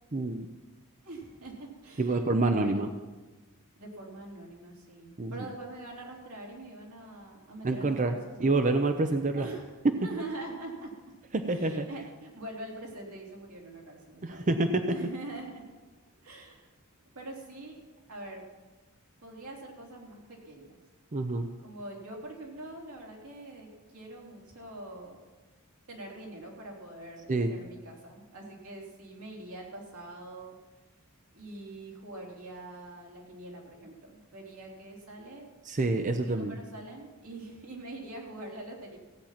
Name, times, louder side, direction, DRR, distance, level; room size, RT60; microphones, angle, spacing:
voice 1, 0.1-0.5 2.0-2.9 5.2-5.3 7.6-9.5 11.3-11.9 14.2-14.8 21.1-21.5 27.3-27.5 35.6-36.6, right 2 dB, 35° right, 7 dB, 0.6 m, -27 dB
voice 2, 1.0-2.8 3.7-8.7 9.3-9.7 10.0-10.9 11.4-14.5 14.9-15.6 16.2-16.7 17.1-17.8 18.1-18.4 19.2-20.8 21.6-25.2 25.9-30.6 31.3-35.5 36.2-39.0, right 2 dB, 85° right, -1 dB, 3.4 m, -44 dB
16.0 x 8.8 x 5.9 m, 1.3 s
head